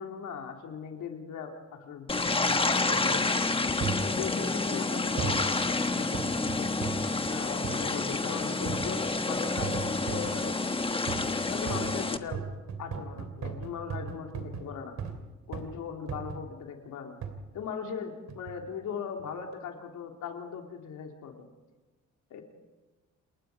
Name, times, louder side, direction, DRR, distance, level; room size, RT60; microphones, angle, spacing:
voice 1, 0.0-3.4 4.0-6.7 7.3-10.7 11.4-12.5 12.8-15.0 15.5-17.2 17.5-21.5 22.3-22.4, left 6 dB, 80° left, 2 dB, 3.3 m, -39 dB
sound 1, 2.1-12.2, left 3 dB, 20° left, 1.2 m, -29 dB
sound 2, 3.8-4.1 5.2-5.5 6.1-7.1 7.6-7.9 8.7-9.0 9.6-10.4 11.1-11.4 11.7-15.2 15.5-15.8 16.1-16.5 17.2-17.4 18.3-18.6 19.2-19.3, right 6 dB, 60° right, 3.2 m, -36 dB
29.0 x 20.5 x 5.1 m, 1.2 s
cardioid pair, 90°, 30 cm